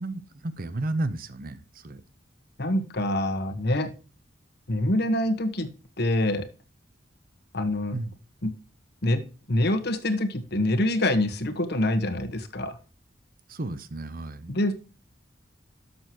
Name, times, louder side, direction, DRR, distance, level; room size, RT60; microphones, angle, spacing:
voice 1, 0.0-2.0 7.9-8.1 13.5-14.5, right 2 dB, 45° right, 13 dB, 0.8 m, -33 dB
voice 2, 2.6-3.9 4.7-5.7 6.0-6.5 7.5-8.0 8.4-8.5 9.0-9.2 9.5-12.8 14.5-14.7, left 1 dB, 55° left, 9 dB, 1.4 m, -25 dB
12.0 x 6.7 x 3.0 m, 0.33 s
head